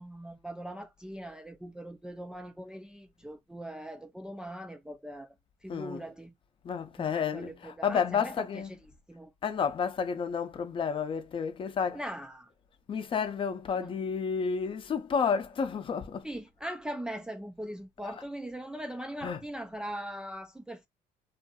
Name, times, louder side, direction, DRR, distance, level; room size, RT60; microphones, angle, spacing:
voice 1, 0.0-5.3 5.6-6.3 7.0-8.8 9.1-9.3 11.9-12.5 13.8-13.9 16.2-20.9, right 1 dB, 5° right, 0.3 m, -40 dB
voice 2, 5.7-6.0 6.6-8.8 9.4-12.1 12.9-16.3 18.0-18.1 19.2-19.5, left 6 dB, 40° left, 0.6 m, -31 dB
2.6 x 2.5 x 2.2 m
cardioid pair, 100°, 14 cm